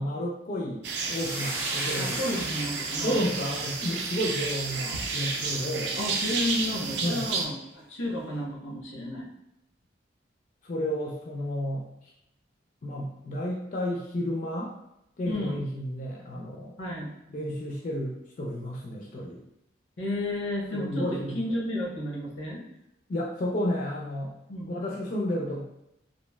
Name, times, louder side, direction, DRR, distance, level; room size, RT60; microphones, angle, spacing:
voice 1, 0.0-2.2 3.0-6.0 7.0-7.3 10.6-12.1 12.8-14.7 15.2-16.8 17.3-19.4 20.7-21.4 23.1-24.3 24.7-25.6, equal, 45° left, -2 dB, 0.3 m, -31 dB
sound 1, 0.8-7.4, right 4 dB, 65° right, 0.4 m, -31 dB
Hiss, 1.1-5.6, right 1 dB, 10° right, 0.5 m, -39 dB
voice 2, 2.0-3.2 6.0-9.3 15.2-15.6 16.8-17.1 20.0-22.6 24.5-24.7, left 1 dB, 90° left, -2 dB, 0.8 m, -32 dB
3.0 x 2.4 x 2.2 m, 0.84 s
head